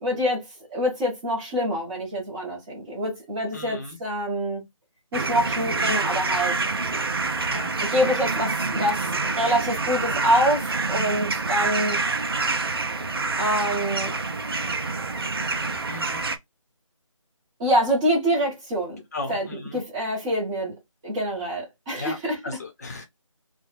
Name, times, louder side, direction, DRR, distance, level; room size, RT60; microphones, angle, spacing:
voice 1, 0.0-4.6 5.1-6.6 7.9-12.0 13.4-14.2 17.6-19.0 19.3-19.5 19.7-20.7 21.0-22.4, equal, 10° right, 1.1 m, -25 dB
voice 2, 3.5-4.0 7.5-7.7 15.9-16.2 19.1-19.8 21.9-22.2 22.4-23.0, left 2 dB, 30° left, 0.9 m, -35 dB
sound 1, 5.1-16.4, right 3 dB, 45° right, 0.5 m, -27 dB
3.1 x 2.3 x 3.4 m
figure-of-eight pair, 165°, 17 cm